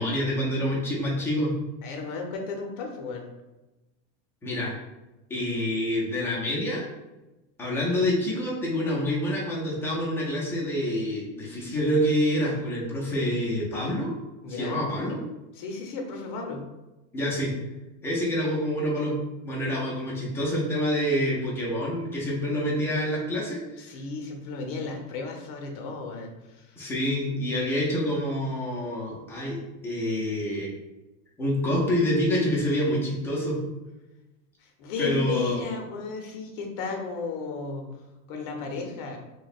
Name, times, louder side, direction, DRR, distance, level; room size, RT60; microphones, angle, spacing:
voice 1, 0.0-1.5 4.4-4.7 5.3-6.9 7.6-14.1 14.5-15.2 17.1-17.5 18.0-23.6 26.8-29.6 29.8-30.7 31.4-33.6 35.0-35.6, equal, 5° left, -5 dB, 0.4 m, -27 dB
voice 2, 1.8-3.2 14.4-14.8 15.5-16.7 23.8-26.8 34.6-37.9 38.3-39.2, left 4 dB, 45° left, 2 dB, 0.7 m, -34 dB
2.8 x 2.2 x 4.0 m, 1.0 s
supercardioid pair, 170°, 36 cm